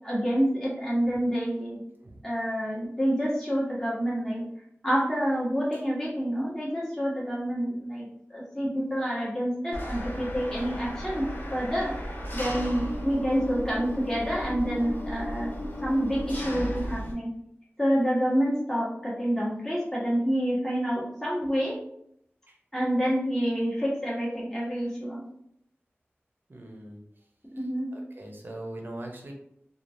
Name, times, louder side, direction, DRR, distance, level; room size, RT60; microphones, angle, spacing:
voice 1, 0.0-1.8 2.2-4.4 4.8-12.0 12.3-15.5 15.8-17.3 17.8-21.8 22.7-25.2 27.5-27.9, equal, 10° left, -6 dB, 1.2 m, -28 dB
Engine, 9.7-17.1, equal, 50° left, 0.7 m, -35 dB
voice 2, 26.5-27.0 27.9-29.3, right 1 dB, 50° right, 1 dB, 0.7 m, -41 dB
3.1 x 2.3 x 2.6 m, 0.72 s
wide cardioid pair, 65°, 4 cm